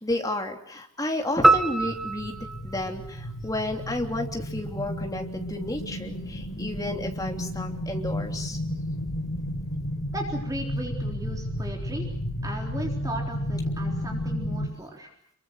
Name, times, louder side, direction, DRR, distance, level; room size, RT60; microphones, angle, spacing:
voice 1, 0.0-8.6, left 1 dB, 15° left, 3 dB, 3.1 m, -32 dB
sound 1, 1.4-3.9, right 2 dB, ahead, 1.0 m, -24 dB
sound 2, 1.5-14.7, equal, 80° left, 5.2 m, -32 dB
voice 2, 10.1-12.1 12.4-15.3, right 1 dB, 15° right, 1 dB, 3.8 m, -36 dB
27.5 x 23.5 x 6.5 m, 0.64 s
head